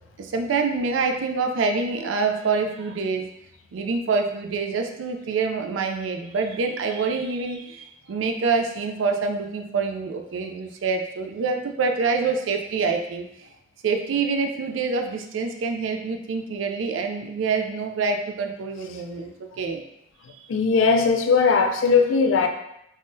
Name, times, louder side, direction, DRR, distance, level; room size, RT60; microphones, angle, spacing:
voice 1, 0.2-3.3 3.7-13.3 13.8-19.8 20.4-20.5, right 4 dB, 85° right, 4 dB, 0.4 m, -26 dB
voice 2, 20.5-22.5, left 5 dB, 90° left, 5 dB, 0.4 m, -19 dB
3.5 x 2.1 x 2.6 m, 0.79 s
head